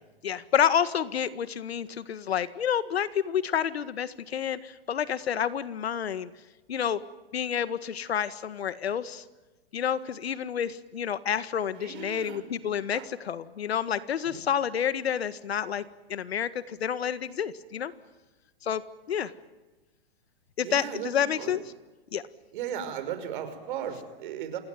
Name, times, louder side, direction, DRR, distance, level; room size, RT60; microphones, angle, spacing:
voice 1, 0.2-6.3 6.7-7.0 7.3-9.2 9.7-15.8 16.1-17.9 18.6-18.8 19.1-19.3 20.6-21.6 22.1-22.2, left 8 dB, 85° left, 13 dB, 1.8 m, -29 dB
voice 2, 11.8-12.4 12.9-13.1 14.3-14.4 20.6-21.6 22.5-24.6, right 9 dB, 55° right, 10 dB, 5.7 m, -36 dB
27.5 x 21.0 x 9.4 m, 1.1 s
hypercardioid pair, 140°, 31 cm